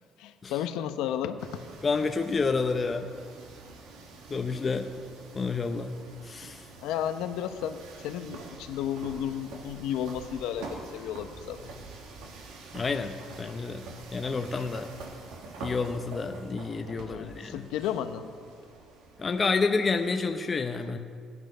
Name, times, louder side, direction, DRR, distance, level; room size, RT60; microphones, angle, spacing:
voice 1, 0.2-1.6 6.8-11.6 17.0-18.3, left 10 dB, 85° left, 9 dB, 0.9 m, -33 dB
sound 1, 1.4-20.2, right 3 dB, 90° right, 2.2 m, -46 dB
voice 2, 1.8-3.1 4.3-4.9 5.3-5.9 6.2-6.7 12.7-13.8 14.1-14.9 15.6-17.7 19.2-21.0, left 4 dB, 25° left, 6 dB, 0.7 m, -29 dB
17.0 x 11.0 x 5.5 m, 2.2 s
cardioid pair, 125°, 0 cm